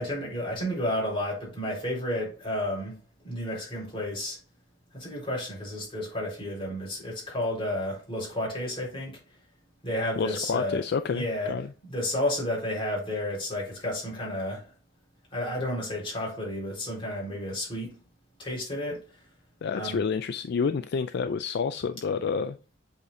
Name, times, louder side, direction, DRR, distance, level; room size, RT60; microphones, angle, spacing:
voice 1, 0.0-3.0 3.2-4.4 4.9-9.2 9.8-10.8 11.1-11.5 11.9-14.7 15.3-18.0 18.4-19.0 19.7-20.0, left 1 dB, 30° left, 4.0 m, -31 dB
voice 2, 10.2-11.7 19.6-22.8, left 5 dB, 60° left, 0.4 m, -29 dB
8.1 x 5.0 x 2.6 m
head